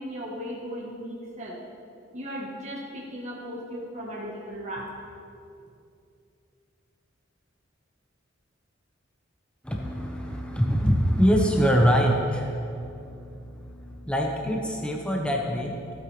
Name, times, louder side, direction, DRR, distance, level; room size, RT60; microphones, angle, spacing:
voice 1, 0.0-1.6 2.1-4.9, equal, 35° right, -3 dB, 1.5 m, -36 dB
voice 2, 9.6-15.9, equal, 5° left, 0 dB, 1.1 m, -24 dB
15.5 x 8.9 x 3.4 m, 2.6 s
head